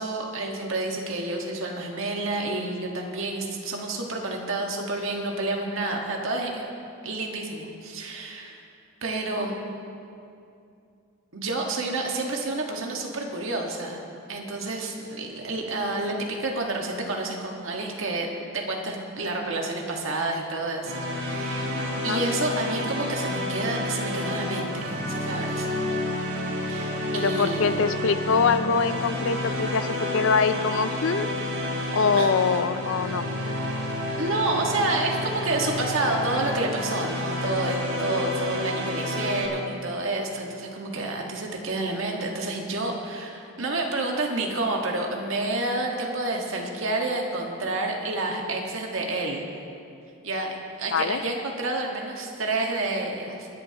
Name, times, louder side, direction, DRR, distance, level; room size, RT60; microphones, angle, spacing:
voice 1, 0.0-6.6 7.0-8.6 9.0-9.5 11.3-14.0 14.3-18.3 18.5-25.7 26.6-27.8 32.2-32.3 34.2-49.6 50.2-53.5, right 2 dB, 65° right, 0 dB, 1.6 m, -29 dB
sound 1, 20.8-39.5, left 1 dB, 85° right, 3.1 m, -30 dB
voice 2, 27.1-31.3 31.9-33.2 50.9-51.2, left 5 dB, 60° left, 12 dB, 0.4 m, -24 dB
23.5 x 10.5 x 2.9 m, 2.6 s
head